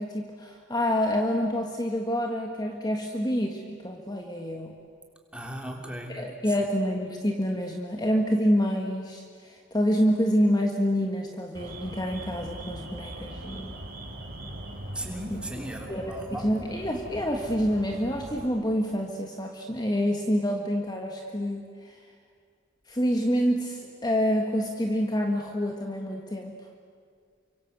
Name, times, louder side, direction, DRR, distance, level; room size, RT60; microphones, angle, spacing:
voice 1, 0.0-4.7 6.1-13.7 15.3-15.4 15.9-22.0 22.9-26.5, equal, 20° left, 2 dB, 1.6 m, -27 dB
voice 2, 5.3-6.2 14.9-16.5, right 1 dB, 5° right, 1 dB, 3.2 m, -37 dB
Alarm, 11.5-18.5, right 1 dB, 50° right, 4.3 m, -41 dB
29.0 x 25.0 x 8.1 m, 2.1 s
head